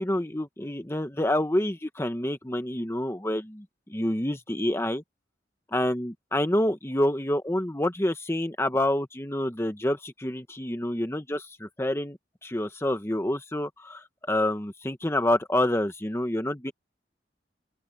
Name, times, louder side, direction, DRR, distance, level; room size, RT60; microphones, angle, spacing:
voice 1, 0.0-3.6 3.9-5.0 5.7-12.2 12.4-16.7, left 1 dB, 15° left, 1.1 m, -27 dB
open air
head